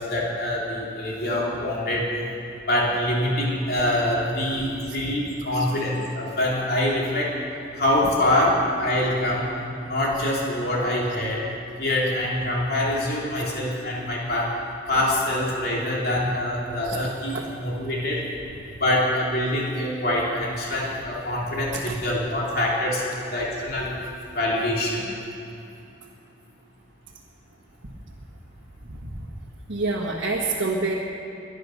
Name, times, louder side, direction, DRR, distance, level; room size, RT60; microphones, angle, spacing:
voice 1, 0.0-2.2 2.7-7.3 7.8-9.6 9.9-11.4 11.8-14.6 14.9-18.2 18.8-24.0 24.3-25.0, left 1 dB, 50° left, -4 dB, 3.1 m, -25 dB
voice 2, 28.9-29.2 29.7-30.9, right 3 dB, 70° right, -3 dB, 1.5 m, -28 dB
22.5 x 9.9 x 6.4 m, 2.8 s
head